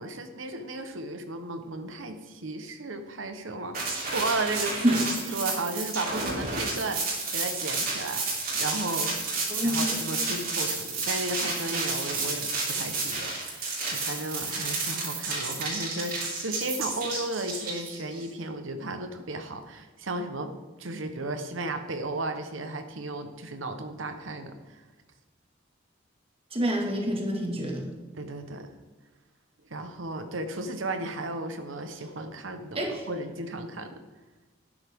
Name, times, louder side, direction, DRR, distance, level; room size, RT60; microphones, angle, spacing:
voice 1, 0.0-8.2 8.5-20.5 20.8-24.8 28.2-28.7 29.7-34.0, right 2 dB, 90° right, 7 dB, 1.1 m, -34 dB
sound 1, 3.7-18.2, right 3 dB, 50° right, 3.4 m, -31 dB
voice 2, 9.5-9.9 26.5-27.9 32.8-33.0, equal, 30° right, 1 dB, 1.9 m, -27 dB
12.0 x 10.0 x 3.6 m, 1.2 s
head